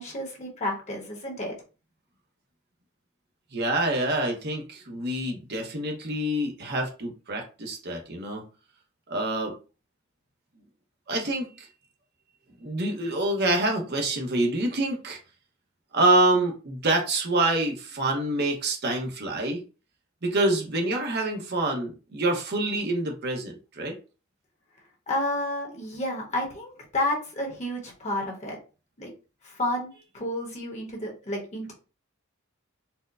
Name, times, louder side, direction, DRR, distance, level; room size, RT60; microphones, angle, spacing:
voice 1, 0.0-1.5 25.1-28.6 29.0-29.1 29.4-31.7, left 1 dB, 35° left, 0 dB, 1.0 m, -31 dB
voice 2, 3.5-8.4 9.1-9.5 11.1-11.7 12.6-15.2 15.9-19.6 20.2-24.0, right 2 dB, 50° right, 1 dB, 0.8 m, -26 dB
4.3 x 2.1 x 2.4 m, 0.33 s
head